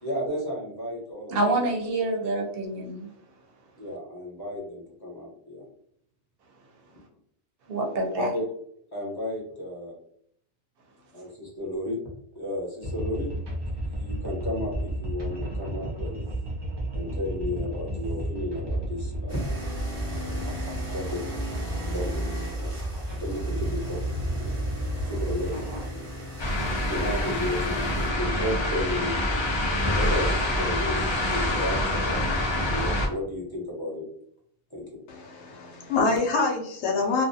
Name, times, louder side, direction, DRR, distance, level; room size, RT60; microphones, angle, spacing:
voice 1, 0.0-1.3 2.0-2.1 3.8-5.6 8.2-8.4 8.9-9.9 11.1-12.0 12.3-13.3 13.9-16.3 16.9-19.6 20.1-20.5 20.9-21.2 21.9-22.2 22.5-22.7 23.2-24.0 24.3-24.5 25.1-25.6 25.9-26.0 26.9-29.2 29.9-32.2 32.7-34.0 34.7-35.0, left 1 dB, 25° left, -4 dB, 0.7 m, -33 dB
voice 2, 1.3-3.1 7.7-8.3, right 2 dB, 65° right, 2 dB, 0.7 m, -27 dB
sound 1, 12.8-25.9, right 1 dB, 35° right, 0.4 m, -32 dB
sound 2, 19.3-28.1, left 1 dB, 15° right, 0.7 m, -37 dB
sound 3, 26.4-33.1, left 1 dB, 50° left, 0.3 m, -26 dB
voice 3, 35.1-37.3, left 3 dB, 85° left, 2 dB, 0.9 m, -26 dB
2.3 x 2.1 x 2.6 m, 0.69 s
omnidirectional pair, 1.1 m